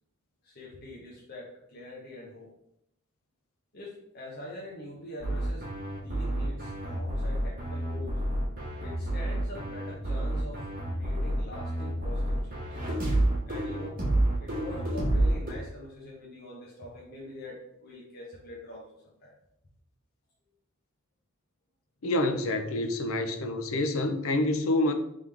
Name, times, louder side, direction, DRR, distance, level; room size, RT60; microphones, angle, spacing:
voice 1, 0.4-2.5 3.7-8.2 8.8-12.7 13.5-14.0 14.4-19.3, left 1 dB, 45° left, 0.8 m, -44 dB
sound 1, 5.2-15.5, right 1 dB, 40° right, 1.5 m, -29 dB
voice 2, 22.0-24.9, left 2 dB, 70° left, 0.5 m, -27 dB
3.6 x 3.4 x 3.3 m
head